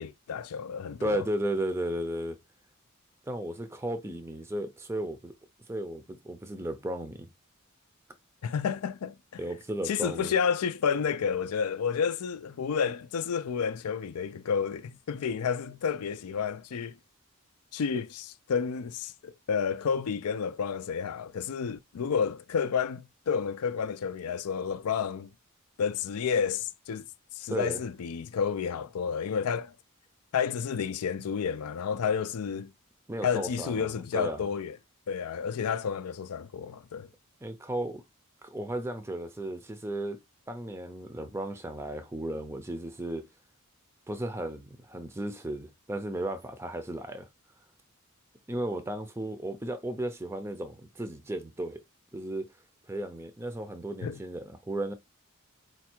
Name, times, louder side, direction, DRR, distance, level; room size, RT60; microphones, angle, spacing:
voice 1, 0.0-1.2 8.4-9.4 9.9-17.0 17.7-25.3 25.8-27.0 27.3-29.7 30.3-32.7 33.2-34.8 35.1-37.1 54.0-54.2, left 6 dB, 85° left, 0.4 m, -30 dB
voice 2, 1.0-2.4 3.3-5.3 5.7-7.3 9.4-10.3 27.5-27.8 33.1-34.5 37.4-38.0 38.4-40.2 40.5-43.2 44.1-47.3 48.5-51.8 52.1-52.5 52.9-54.9, right 1 dB, 10° right, 0.5 m, -34 dB
4.4 x 2.3 x 4.4 m
head